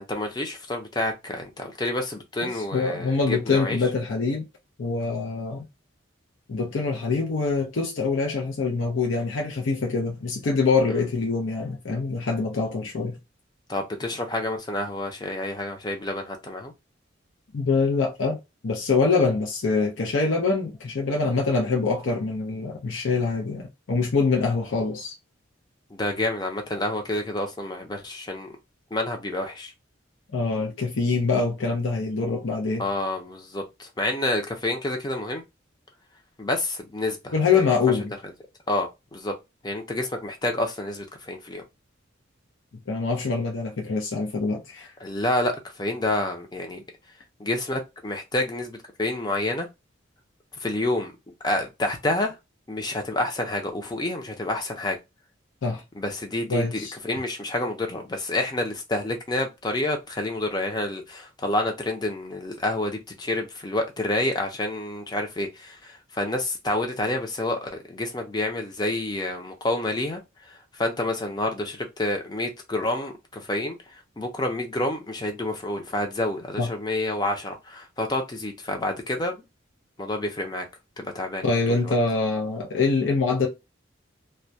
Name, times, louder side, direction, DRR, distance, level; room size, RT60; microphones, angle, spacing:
voice 1, 0.0-3.8 13.7-16.7 25.9-28.5 28.9-29.7 32.8-35.4 36.4-37.6 38.7-39.3 39.6-41.6 45.0-46.8 47.4-49.7 50.6-51.1 51.4-52.3 52.7-55.0 56.0-70.2 70.8-73.7 74.2-79.4 80.0-80.6 81.0-81.4 81.7-81.9, left 1 dB, 20° left, 0.5 m, -28 dB
voice 2, 2.4-4.4 4.8-5.6 6.5-13.2 17.5-18.4 18.6-25.1 30.3-32.9 37.3-38.1 42.9-44.9 55.6-55.8 56.5-57.0 76.6-76.7 81.4-83.5, left 4 dB, 80° left, 0.6 m, -24 dB
2.2 x 2.1 x 2.6 m
head